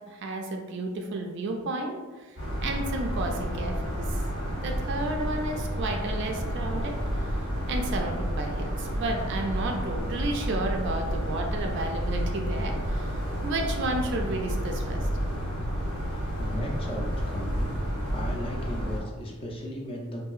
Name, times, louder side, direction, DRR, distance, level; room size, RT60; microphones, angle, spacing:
voice 1, 0.1-4.2 4.6-7.3 7.7-15.1, right 2 dB, 55° right, 2 dB, 0.3 m, -32 dB
sound 1, 2.4-19.0, equal, 85° left, 1.4 m, -30 dB
voice 2, 16.4-17.8 18.1-20.2, equal, 25° left, -1 dB, 0.4 m, -35 dB
2.7 x 2.5 x 2.3 m, 1.3 s
head